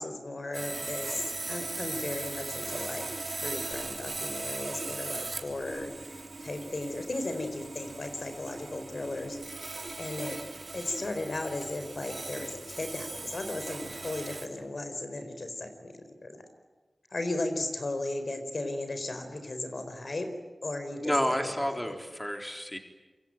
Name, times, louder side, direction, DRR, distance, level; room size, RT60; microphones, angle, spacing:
voice 1, 0.0-9.4 10.0-10.4 10.7-15.9 16.2-16.4 17.1-20.3 20.6-21.4 21.7-21.8, left 2 dB, 65° left, 7 dB, 4.4 m, -36 dB
Sawing, 0.5-14.5, right 3 dB, 55° right, 3.6 m, -39 dB
voice 2, 21.0-22.8, equal, 10° left, 4 dB, 3.8 m, -30 dB
27.5 x 24.0 x 9.1 m, 1.3 s
cardioid pair, 45°, 0 cm